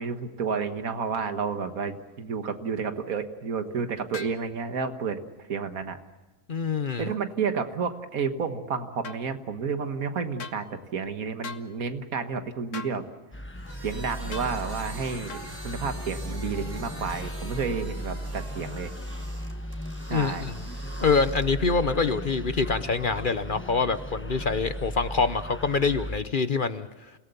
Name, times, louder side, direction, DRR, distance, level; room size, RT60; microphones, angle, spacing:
voice 1, 0.0-5.2 5.5-6.0 7.0-13.0 13.8-15.4 15.6-18.9 20.1-20.5, right 5 dB, 85° right, 8 dB, 1.9 m, -31 dB
sound 1, 4.1-4.4 9.0-9.2 10.4-10.6 11.4-11.7 12.7-13.0 14.3-14.5 15.3-15.5, left 5 dB, 65° left, 1.4 m, -39 dB
voice 2, 6.5-7.1 20.1-20.6 21.0-26.9, left 4 dB, 45° left, 12 dB, 0.9 m, -25 dB
sound 2, 13.3-26.2, equal, 10° left, 0.8 m, -36 dB
sound 3, 13.5-21.7, right 1 dB, 15° right, 2.1 m, -46 dB
29.0 x 18.0 x 6.9 m, 1.2 s
omnidirectional pair, 1.4 m